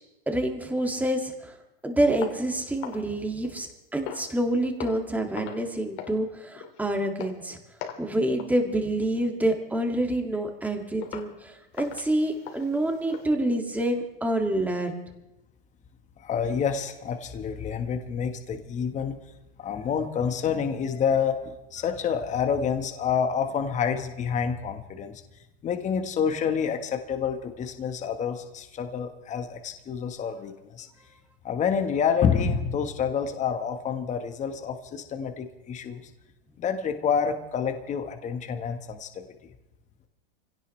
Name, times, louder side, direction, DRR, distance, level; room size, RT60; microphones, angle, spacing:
voice 1, 0.3-1.6 1.8-7.6 8.0-14.9, right 1 dB, 5° right, 3 dB, 2.3 m, -27 dB
sound 1, 2.2-3.7 4.0-4.4 4.8-5.1 5.3-5.7 6.0-6.2 6.5-6.8 7.2-7.4 7.8-8.1 8.4-8.6 9.0-9.2 9.7-9.8 10.3-10.4 11.0-11.3 11.7-13.3, left 9 dB, 50° left, 2.5 m, -40 dB
voice 2, 16.2-19.2 19.6-25.2 25.6-30.9 31.4-36.0 36.6-39.3, left 7 dB, 25° left, 6 dB, 1.5 m, -28 dB
25.5 x 17.0 x 3.3 m, 0.97 s
supercardioid pair, 130°, 30 cm